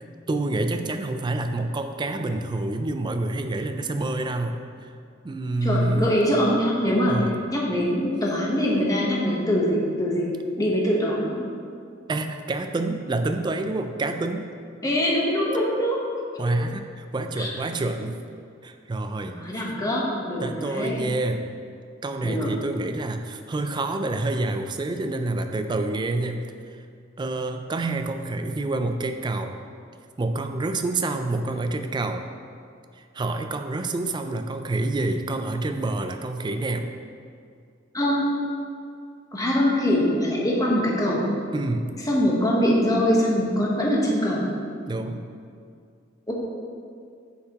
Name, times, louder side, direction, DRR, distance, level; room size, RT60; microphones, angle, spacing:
voice 1, 0.3-4.6 5.2-6.2 7.1-7.3 12.1-14.5 16.4-18.2 18.6-19.4 20.4-21.5 22.0-26.5 27.2-29.5 30.2-32.2 33.1-36.9 41.5-41.9 44.9-45.2, right 2 dB, 25° right, 7 dB, 0.3 m, -27 dB
voice 2, 5.6-10.3 10.6-11.3 14.8-16.0 17.4-17.5 19.3-21.0 22.2-22.5 37.9-38.3 39.3-41.3 42.1-44.5 46.3-46.4, equal, 20° left, -3 dB, 1.1 m, -23 dB
8.0 x 5.6 x 2.9 m, 2.3 s
head